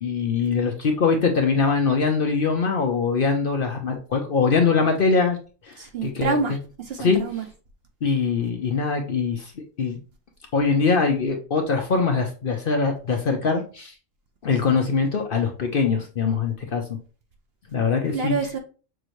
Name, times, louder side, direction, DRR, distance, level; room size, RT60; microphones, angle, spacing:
voice 1, 0.0-5.4 5.6-6.4 7.0-7.2 8.0-9.5 9.8-10.0 10.5-13.9 14.4-17.0 17.7-18.3, left 5 dB, 50° left, 0.7 m, -22 dB
voice 2, 5.8-7.4 18.1-18.6, right 4 dB, 60° right, 0.8 m, -27 dB
6.2 x 2.6 x 3.0 m
omnidirectional pair, 1.4 m